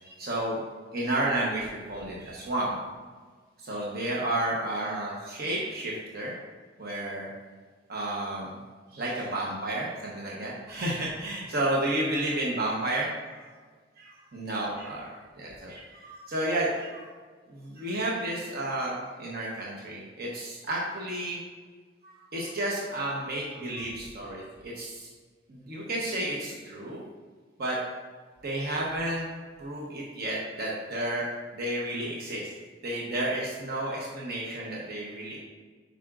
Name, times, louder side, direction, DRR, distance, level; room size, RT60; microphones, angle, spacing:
voice 1, 0.0-2.8 3.6-6.3 6.8-7.3 7.9-8.6 8.9-13.5 14.0-15.1 15.3-17.1 17.5-21.4 22.0-25.1 25.5-27.0 27.6-27.8 28.4-29.3 29.6-31.2 31.5-32.5 32.8-35.4, right 1 dB, 55° right, -4 dB, 1.0 m, -31 dB
9.2 x 5.1 x 2.5 m, 1.5 s
head